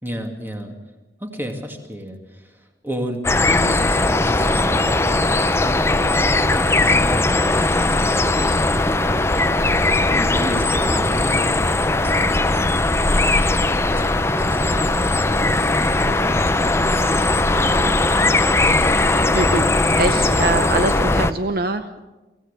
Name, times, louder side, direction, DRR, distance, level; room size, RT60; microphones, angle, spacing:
voice 1, 0.0-0.8 1.2-9.3 10.0-11.7 11.9-18.9, equal, 10° right, 3 dB, 2.3 m, -33 dB
sound 1, 3.2-21.3, left 2 dB, 15° left, 0.6 m, -19 dB
voice 2, 9.3-9.9 19.3-19.7 20.0-22.0, right 2 dB, 55° right, 9 dB, 0.8 m, -24 dB
24.5 x 16.0 x 6.7 m, 1.1 s
head